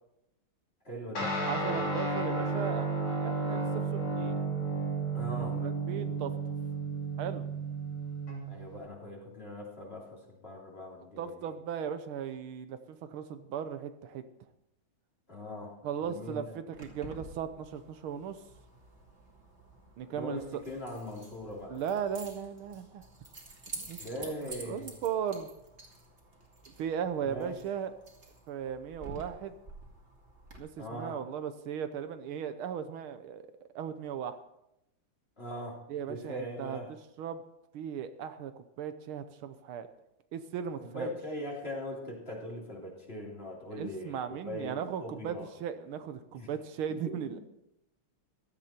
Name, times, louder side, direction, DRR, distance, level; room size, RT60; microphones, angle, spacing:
voice 1, 0.8-1.4 5.1-5.6 8.5-11.5 15.3-15.7 16.0-16.6 20.1-21.8 24.0-24.9 27.2-27.6 30.8-31.2 35.4-35.8 36.1-36.9 40.8-44.2 44.5-44.7 45.0-45.5 46.3-46.5 47.1-47.4, left 1 dB, 25° left, -2 dB, 3.5 m, -40 dB
Guitar, 1.2-8.9, right 3 dB, 80° left, 4.4 m, -33 dB
voice 2, 1.4-2.9 3.1-3.7 3.9-4.3 5.3-6.3 7.2-7.4 11.2-14.2 15.8-18.4 20.0-20.6 21.7-23.0 23.8-25.5 26.8-27.9 28.5-29.6 30.6-33.4 33.7-34.4 35.9-36.8 37.2-37.4 37.7-39.9 40.3-41.1 43.7-47.4, right 8 dB, 80° right, 10 dB, 1.7 m, -37 dB
Keys jangling, 16.7-30.6, right 2 dB, 30° right, 2.7 m, -50 dB
16.0 x 13.0 x 4.4 m, 0.84 s
omnidirectional pair, 2.3 m